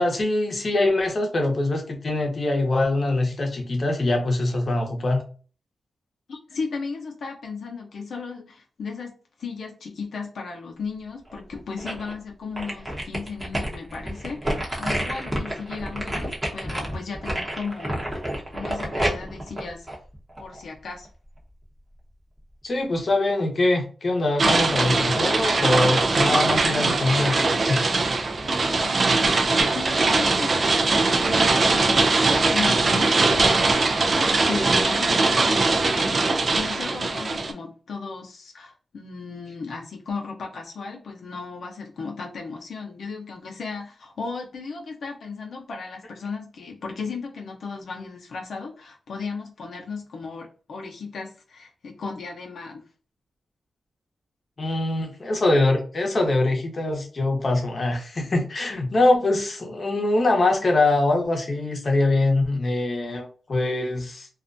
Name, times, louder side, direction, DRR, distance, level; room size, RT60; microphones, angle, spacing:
voice 1, 0.0-5.2 22.6-27.4 27.7-27.8 54.6-64.3, left 2 dB, 45° left, 2 dB, 0.8 m, -23 dB
voice 2, 6.3-9.1 9.4-18.2 18.5-19.9 20.4-21.1 28.8-52.9, left 4 dB, 75° left, 0 dB, 0.5 m, -35 dB
sound 1, 11.3-12.1 12.6-20.6 21.0-21.1, right 1 dB, 20° right, 0.8 m, -29 dB
sound 2, 24.4-37.5, right 3 dB, 50° right, 0.4 m, -21 dB
2.4 x 2.1 x 2.5 m, 0.39 s
cardioid pair, 85°, 0 cm